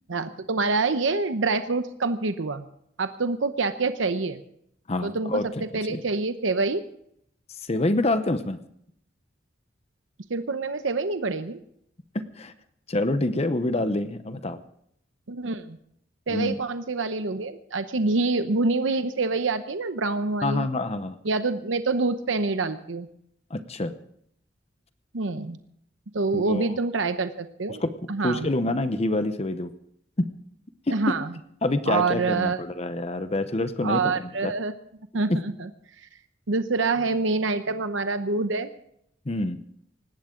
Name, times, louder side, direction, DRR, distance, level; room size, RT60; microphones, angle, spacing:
voice 1, 0.1-2.7 3.0-4.4 5.0-6.8 10.3-11.6 15.3-15.8 16.3-20.7 21.2-23.1 25.1-25.6 26.1-27.8 28.1-28.5 30.9-31.3 31.9-32.6 33.8-34.7 35.1-35.7 36.5-38.7, right 3 dB, 85° right, 10 dB, 0.8 m, -26 dB
voice 2, 4.9-5.6 5.9-6.0 7.7-8.6 12.1-12.5 12.9-14.6 16.3-16.5 20.4-21.2 23.5-23.9 26.3-26.7 27.8-27.9 28.2-29.7 30.2-30.3 31.6-34.5 35.3-35.4 39.3-39.6, left 2 dB, 35° left, 11 dB, 0.8 m, -26 dB
19.0 x 16.0 x 3.8 m, 0.70 s
head